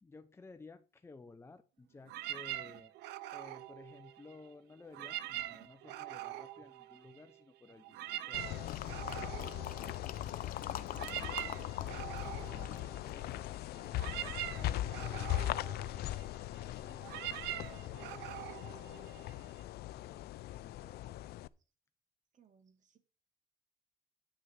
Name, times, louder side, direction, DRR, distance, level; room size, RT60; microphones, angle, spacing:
voice 1, 0.0-2.9 3.3-9.5 12.2-15.6 16.5-18.7 19.9-21.5, left 3 dB, 15° left, 0.8 m, -57 dB
sound 1, 2.1-4.5 4.8-7.4 7.7-19.6, right 14 dB, 85° right, 0.8 m, -44 dB
sound 2, 8.3-21.5, left 14 dB, 70° left, 0.5 m, -40 dB
sound 3, 8.7-11.9 12.2-13.6 14.2-14.3, left 10 dB, 55° left, 0.9 m, -44 dB
voice 2, 12.2-12.7 14.5-14.6 18.2-18.3 18.6-18.7 22.3-23.0, right 8 dB, 45° right, 2.6 m, -68 dB
9.5 x 6.4 x 5.7 m
cardioid pair, 110°, 17 cm